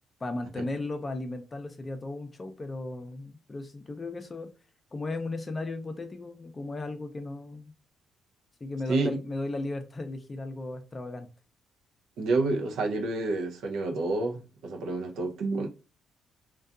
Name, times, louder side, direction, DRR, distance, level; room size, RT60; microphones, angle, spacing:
voice 1, 0.2-4.5 4.9-7.7 8.6-11.3, left 2 dB, 30° left, 0.4 m, -35 dB
voice 2, 12.2-15.7, right 3 dB, 80° right, 0.5 m, -29 dB
2.6 x 2.2 x 2.3 m
cardioid pair, 90°, 0 cm